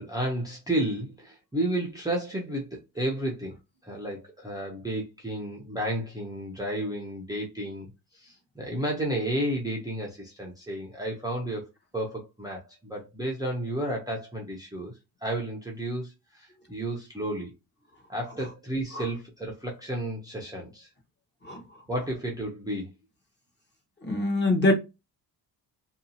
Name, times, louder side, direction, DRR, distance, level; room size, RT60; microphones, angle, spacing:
voice 1, 0.0-3.6 3.8-7.9 8.1-11.7 11.9-14.9 15.2-17.5 18.1-20.9 21.9-22.9, right 1 dB, 10° right, 0.6 m, -32 dB
voice 2, 24.0-24.7, left 2 dB, 25° left, 0.9 m, -24 dB
2.7 x 2.3 x 2.7 m
cardioid pair, 120°, 42 cm